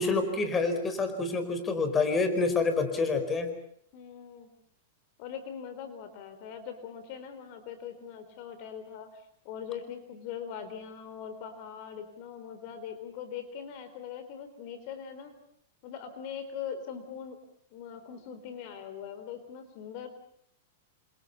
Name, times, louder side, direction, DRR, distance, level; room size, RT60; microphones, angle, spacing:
voice 1, 0.0-3.5, left 3 dB, 15° left, 8 dB, 4.9 m, -27 dB
voice 2, 3.9-4.5 5.2-15.3 15.8-17.4 17.7-20.1, left 8 dB, 45° left, 10 dB, 4.0 m, -41 dB
29.5 x 27.0 x 5.6 m, 0.68 s
supercardioid pair, 145°, 0 cm